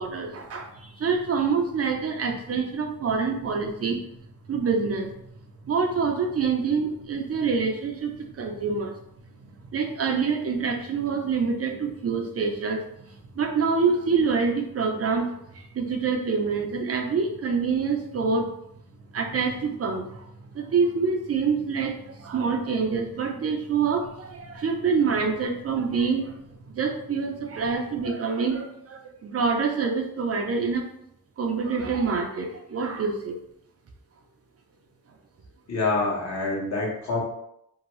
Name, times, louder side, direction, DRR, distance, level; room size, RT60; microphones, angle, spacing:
voice 1, 0.0-4.0 4.5-5.1 5.6-8.9 9.7-12.8 13.4-15.3 15.7-18.5 19.1-20.1 20.5-21.9 22.2-26.3 26.8-30.8 31.4-33.4, right 5 dB, 40° right, 3 dB, 0.5 m, -26 dB
voice 2, 35.7-37.2, left 3 dB, 50° left, -4 dB, 1.1 m, -26 dB
2.7 x 2.2 x 3.0 m, 0.77 s
cardioid pair, 90°, 36 cm